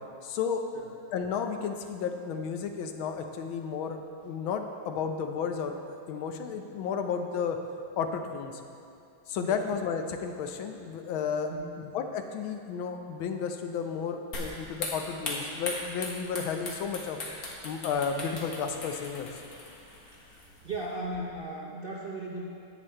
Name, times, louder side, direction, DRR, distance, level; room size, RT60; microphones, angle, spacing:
voice 1, 0.2-0.6 1.1-4.0 4.2-5.8 6.1-7.6 8.0-8.6 9.3-11.5 11.8-17.2 17.6-19.3, left 6 dB, 90° left, 6 dB, 1.6 m, -32 dB
sound 1, 14.3-20.9, left 2 dB, 50° left, 1.8 m, -39 dB
voice 2, 20.1-22.5, right 2 dB, 55° right, -4 dB, 0.6 m, -37 dB
10.0 x 8.4 x 4.3 m, 2.6 s
omnidirectional pair, 2.1 m